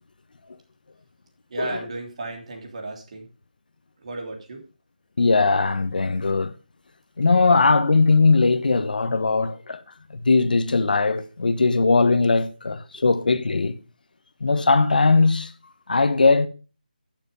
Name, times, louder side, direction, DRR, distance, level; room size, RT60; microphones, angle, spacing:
voice 1, 1.5-3.3 4.0-4.6 12.9-13.1, right 3 dB, 45° right, 3.2 m, -34 dB
voice 2, 5.2-6.5 7.2-9.8 10.1-13.8 14.4-15.5 15.9-16.5, left 3 dB, 65° left, 1.1 m, -19 dB
11.0 x 7.1 x 5.4 m
figure-of-eight pair, 165°, 5 cm